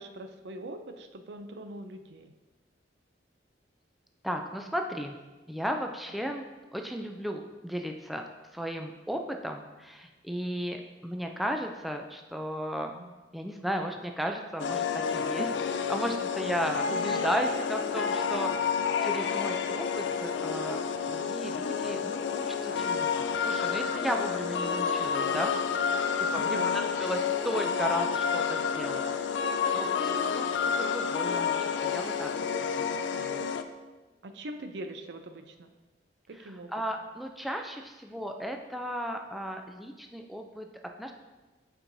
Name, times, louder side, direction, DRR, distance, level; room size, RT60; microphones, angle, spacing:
voice 1, 0.0-2.3 12.8-13.1 15.4-15.5 26.3-26.8 34.2-35.7 36.3-36.7, right 1 dB, 70° right, 7 dB, 0.5 m, -41 dB
voice 2, 4.2-5.2 5.5-6.4 6.7-8.2 8.5-12.9 13.3-15.5 15.9-20.8 21.1-25.5 26.2-29.0 29.4-29.5 29.7-32.3 32.8-33.4 36.3-40.7 41.0-41.1, equal, ahead, 3 dB, 0.3 m, -35 dB
sound 1, 14.6-33.6, left 6 dB, 85° left, 0.4 m, -29 dB
8.3 x 4.5 x 2.7 m, 1.2 s
head